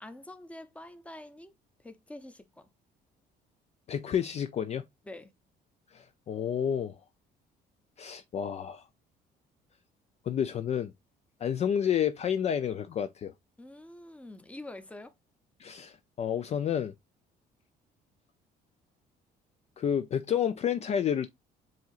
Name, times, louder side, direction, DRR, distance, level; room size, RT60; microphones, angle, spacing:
voice 1, 0.0-1.5 1.8-2.7 5.1-5.3 13.6-15.1, left 1 dB, 10° left, 0.7 m, -46 dB
voice 2, 3.9-4.8 5.9-7.0 8.0-8.9 10.2-10.9 11.4-13.3 15.6-16.9 19.8-21.3, left 8 dB, 40° left, 0.4 m, -30 dB
7.5 x 2.8 x 2.4 m
cardioid pair, 110°, 17 cm